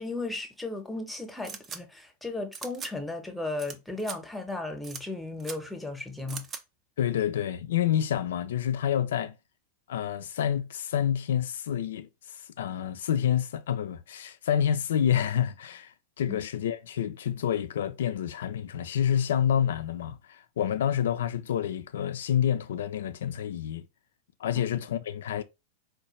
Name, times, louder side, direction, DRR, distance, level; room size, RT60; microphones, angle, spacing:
voice 1, 0.0-6.5 16.3-16.4, left 2 dB, 5° left, 0.8 m, -35 dB
sound 1, 1.4-1.8 2.5-2.9 3.6-3.7 4.0-4.2 4.8-5.0 5.4-5.6 6.3-6.6, right 6 dB, 25° right, 0.5 m, -39 dB
voice 2, 7.0-9.4 9.9-23.8 24.4-25.4, left 9 dB, 60° left, 0.4 m, -28 dB
4.5 x 2.3 x 3.1 m
figure-of-eight pair, 90°, 0 cm